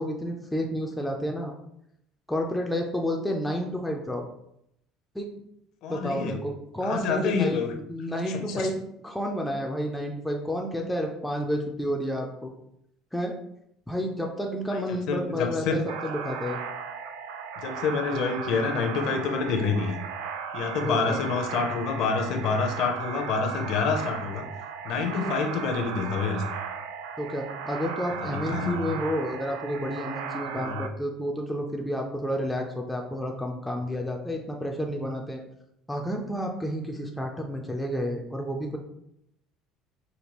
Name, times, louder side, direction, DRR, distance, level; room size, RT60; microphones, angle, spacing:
voice 1, 0.0-1.5 2.3-4.2 5.1-5.3 5.9-12.5 13.1-13.3 13.9-16.6 20.8-21.2 25.2-25.3 27.2-35.4 35.9-38.8, equal, 5° left, 0 dB, 0.3 m, -30 dB
voice 2, 5.8-6.4 6.8-7.7 8.3-8.7 14.7-14.8 15.1-15.8 17.6-20.0 20.5-24.4 24.8-26.4 28.2-28.9 30.5-30.8, left 5 dB, 50° left, 4 dB, 0.5 m, -27 dB
sound 1, 15.9-30.9, right 6 dB, 85° right, 0.3 m, -36 dB
5.1 x 2.3 x 2.9 m, 0.76 s
cardioid pair, 170°, 0 cm